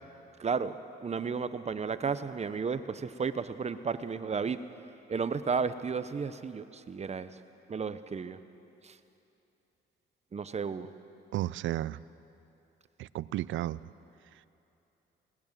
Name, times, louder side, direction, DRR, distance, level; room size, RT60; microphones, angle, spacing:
voice 1, 0.4-4.6 5.1-7.3 7.7-8.4 8.8-9.0 10.3-10.9, right 5 dB, 35° right, 12 dB, 0.9 m, -33 dB
voice 2, 11.3-12.0 13.0-13.8, right 14 dB, 75° right, 19 dB, 0.5 m, -33 dB
20.0 x 18.5 x 7.5 m, 2.8 s
cardioid pair, 90°, 20 cm